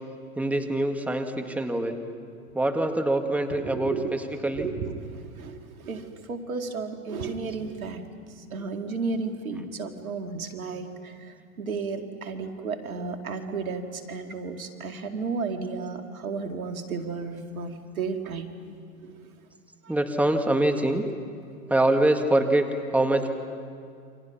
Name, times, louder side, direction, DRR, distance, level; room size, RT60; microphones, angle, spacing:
voice 1, 0.4-2.0 2.5-4.7 8.6-8.7 12.4-12.5 19.9-21.0 21.7-23.3, right 1 dB, 5° right, 5 dB, 1.9 m, -24 dB
voice 2, 3.6-4.1 4.5-8.0 8.5-18.5 19.0-19.2 19.8-19.9, right 4 dB, 85° right, 6 dB, 2.2 m, -33 dB
29.0 x 25.5 x 5.9 m, 2.4 s
hypercardioid pair, 100°, 41 cm